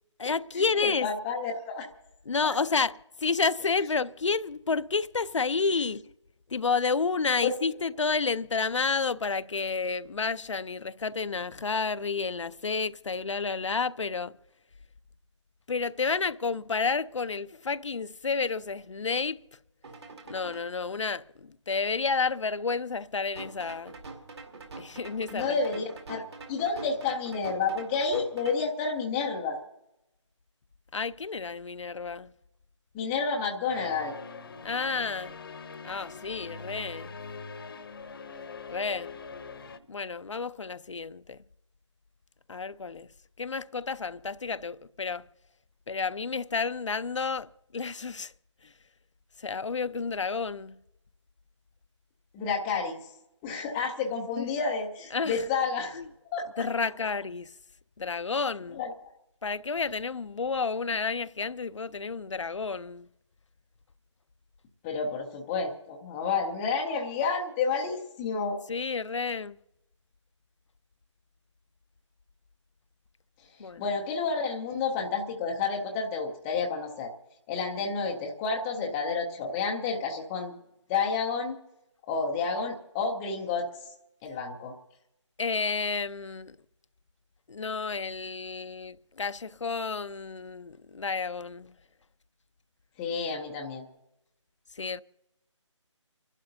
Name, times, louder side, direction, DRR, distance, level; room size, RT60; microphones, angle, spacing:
voice 1, 0.2-1.1 2.3-6.0 6.5-14.3 15.7-19.4 20.3-24.0 24.8-25.6 30.9-32.3 34.6-35.4 35.8-37.2 38.7-39.1 39.9-41.4 42.5-43.1 43.4-45.3 45.9-48.3 48.6-48.7 49.4-50.7 54.4-54.5 55.1-55.5 55.9-56.1 56.6-57.5 58.0-58.8 59.4-63.1 68.7-69.6 73.6-73.9 85.4-86.6 87.5-91.7 94.8-95.0, left 4 dB, 70° left, 0.5 m, -30 dB
voice 2, 0.7-1.9 2.4-2.5 25.3-29.6 32.9-34.1 52.3-53.0 53.4-56.0 56.3-56.6 58.7-58.9 64.8-68.6 73.8-77.1 77.5-80.5 80.9-81.6 82.1-83.7 84.2-84.7 93.0-93.8, left 5 dB, 5° left, 0.4 m, -30 dB
sound 1, 19.8-20.6 23.3-28.6, right 3 dB, 55° right, 2.3 m, -45 dB
sound 2, 33.7-39.8, left 4 dB, 45° left, 0.8 m, -43 dB
29.5 x 11.5 x 2.7 m
figure-of-eight pair, 155°, 16 cm